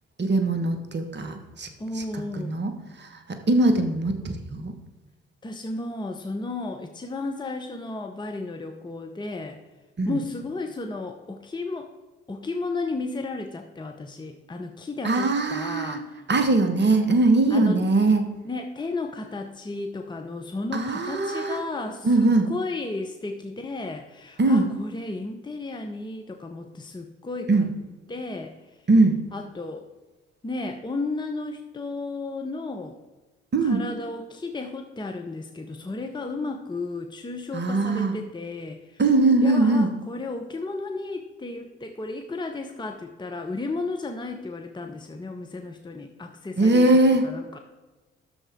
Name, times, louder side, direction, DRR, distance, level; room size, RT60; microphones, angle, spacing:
voice 1, 0.2-1.7 1.9-2.7 3.0-4.7 10.0-10.2 15.0-16.0 16.3-18.3 20.7-21.6 22.0-22.5 24.4-24.7 27.5-27.7 28.9-29.2 33.5-33.8 37.5-38.2 39.0-39.9 46.6-47.3, right 2 dB, 35° right, 6 dB, 1.6 m, -21 dB
voice 2, 1.8-2.6 5.4-9.6 10.1-11.9 12.3-16.2 17.5-17.8 18.4-27.7 28.1-28.5 29.3-29.9 30.4-33.0 33.6-39.0 39.4-46.9 47.2-47.6, left 3 dB, 15° left, 5 dB, 0.9 m, -33 dB
11.5 x 7.0 x 3.7 m, 1.2 s
hypercardioid pair, 45°, 30 cm